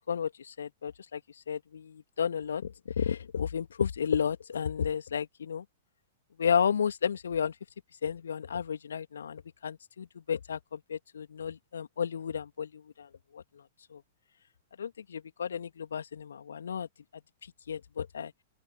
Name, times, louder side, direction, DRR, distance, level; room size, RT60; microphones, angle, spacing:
voice 1, 0.1-1.2 1.5-5.6 6.4-7.5 8.0-13.1 13.3-13.4 13.9-14.0 14.8-16.9 17.7-18.3, left 7 dB, 65° left, 2.6 m, -32 dB
open air
figure-of-eight pair, 100°, 0 cm